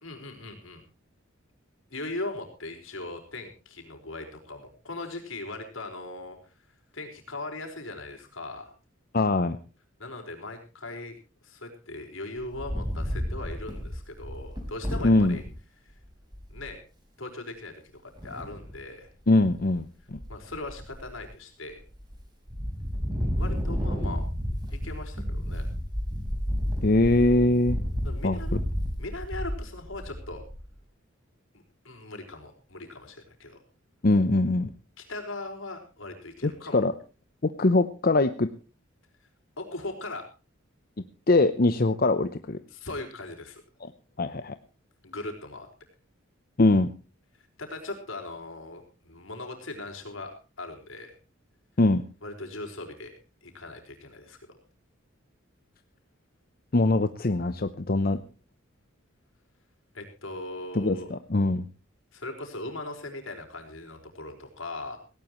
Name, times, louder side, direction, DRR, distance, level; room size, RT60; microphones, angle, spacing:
voice 1, 0.0-0.8 1.9-6.4 6.9-8.7 10.0-11.2 11.4-15.4 16.5-16.8 17.2-19.1 20.3-21.8 23.4-24.2 24.7-25.6 28.0-28.5 29.0-30.4 31.8-33.6 35.0-36.8 39.6-40.2 42.7-43.6 45.0-45.7 47.6-51.2 52.2-53.1 53.4-54.4 59.9-61.1 62.1-65.0, left 2 dB, 75° left, 3 dB, 4.9 m, -39 dB
voice 2, 9.1-9.6 15.0-15.4 19.3-20.2 26.8-27.8 28.2-28.4 34.0-34.7 36.4-36.9 37.4-38.5 41.3-42.6 43.8-43.9 44.2-44.6 46.6-46.9 51.8-52.0 56.7-58.2 60.7-61.6, left 2 dB, 45° left, 10 dB, 0.7 m, -22 dB
Wind, 12.4-15.5 16.0-16.1 16.3-16.7 18.2-18.8 19.3-19.8 20.1-21.2 21.7-22.2 22.5-30.7, equal, 20° right, 4.7 m, -31 dB
18.0 x 17.5 x 3.1 m, 0.33 s
head